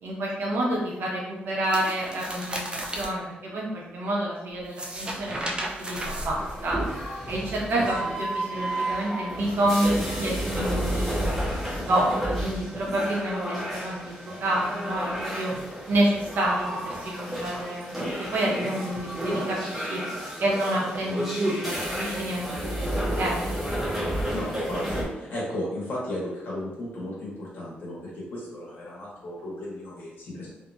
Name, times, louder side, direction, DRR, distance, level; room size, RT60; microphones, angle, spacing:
voice 1, 0.0-6.8 7.3-11.3 11.9-15.5 15.9-20.0 20.4-23.6 23.9-24.3, right 1 dB, 70° right, -4 dB, 0.9 m, -28 dB
sound 1, 1.6-3.1 4.6-6.9, right 1 dB, 25° right, 0.4 m, -34 dB
sound 2, 6.0-25.0, right 1 dB, 5° right, 0.9 m, -31 dB
voice 2, 7.7-8.1 24.3-30.5, left 1 dB, 65° left, -5 dB, 1.2 m, -35 dB
2.8 x 2.6 x 2.3 m, 0.97 s
cardioid pair, 100°, 4 cm